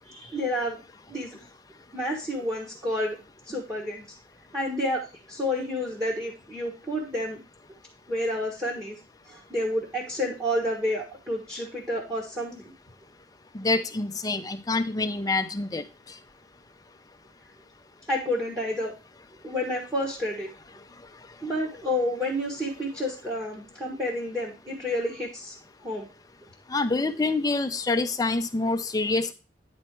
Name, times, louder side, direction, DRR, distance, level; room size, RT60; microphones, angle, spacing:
voice 1, 0.1-0.8 1.1-1.4 1.9-3.2 3.5-4.0 4.5-5.0 5.3-7.4 8.1-9.0 9.3-12.7 18.1-18.9 19.4-20.5 21.4-25.5 25.8-26.1, left 1 dB, 15° right, -2 dB, 1.4 m, -29 dB
voice 2, 13.5-15.8 26.7-29.3, left 3 dB, 20° left, 8 dB, 0.6 m, -26 dB
9.6 x 4.4 x 4.5 m, 0.31 s
head